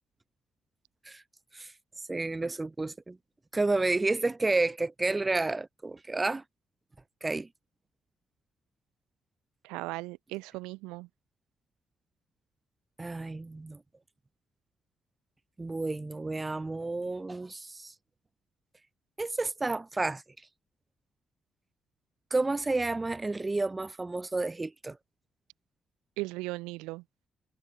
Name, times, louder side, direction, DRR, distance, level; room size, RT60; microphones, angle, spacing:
voice 1, 2.1-3.2 3.5-6.4 7.2-7.5 13.0-13.8 15.6-17.9 19.2-20.2 22.3-25.0, right 2 dB, 25° right, 2.8 m, -30 dB
voice 2, 9.6-11.1 26.2-27.0, right 22 dB, 85° right, 0.6 m, -37 dB
hypercardioid pair, 45°, 0 cm